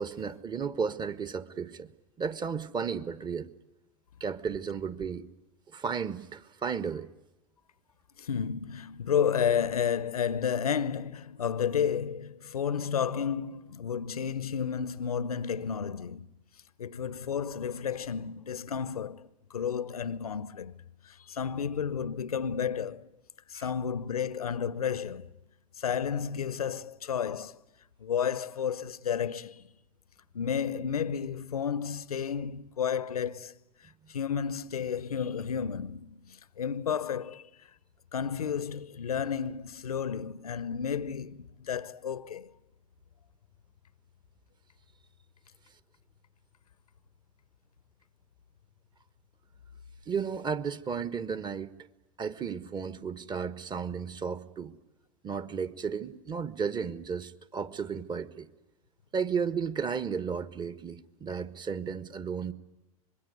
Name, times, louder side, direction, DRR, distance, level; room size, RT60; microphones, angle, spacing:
voice 1, 0.0-1.9 2.2-3.5 4.2-5.3 5.7-7.1 23.5-23.7 50.1-51.7 52.2-54.8 55.2-58.5 59.1-62.5, right 6 dB, 25° right, 1.3 m, -33 dB
voice 2, 8.2-16.3 16.8-23.1 23.5-25.3 25.8-27.6 28.0-29.7 30.3-33.6 34.1-37.5 38.1-42.5, left 7 dB, 80° left, 0.9 m, -32 dB
25.5 x 21.5 x 9.3 m
figure-of-eight pair, 85°, 19 cm